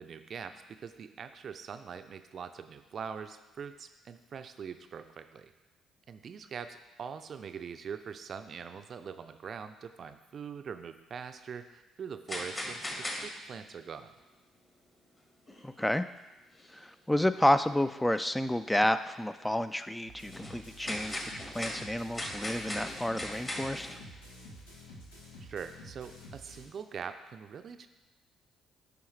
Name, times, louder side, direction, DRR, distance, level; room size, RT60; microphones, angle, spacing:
voice 1, 0.0-5.5 6.1-14.1 25.4-27.9, right 6 dB, 50° right, 9 dB, 0.5 m, -43 dB
sound 1, 12.3-13.5 13.8-14.2 14.9-15.0 15.5-16.2 16.5-16.8 17.2-17.3 17.6-17.7 18.5-18.7 19.3-19.5 19.8-24.3, left 1 dB, 25° left, 1.6 m, -39 dB
voice 2, 15.6-16.0 16.7-21.2 21.5-24.0, left 1 dB, 10° left, 11 dB, 0.3 m, -30 dB
sound 2, 20.0-26.7, equal, 85° left, 1.1 m, -50 dB
10.0 x 5.0 x 3.2 m, 1.0 s
figure-of-eight pair, 45°, 0 cm